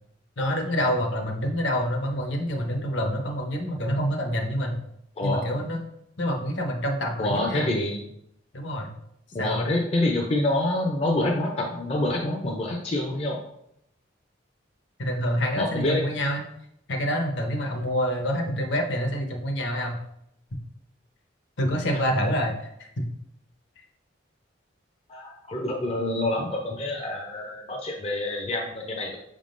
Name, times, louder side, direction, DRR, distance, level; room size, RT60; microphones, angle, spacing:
voice 1, 0.4-4.8 5.2-5.8 6.2-7.7 8.5-8.9 9.4-9.7 15.0-16.4 16.9-20.0 21.6-23.1, equal, 65° left, 3 dB, 0.8 m, -27 dB
voice 2, 7.2-8.0 9.3-13.4 15.6-16.0 25.1-29.2, left 1 dB, 30° left, 1 dB, 0.4 m, -27 dB
5.7 x 3.6 x 2.5 m, 0.77 s
head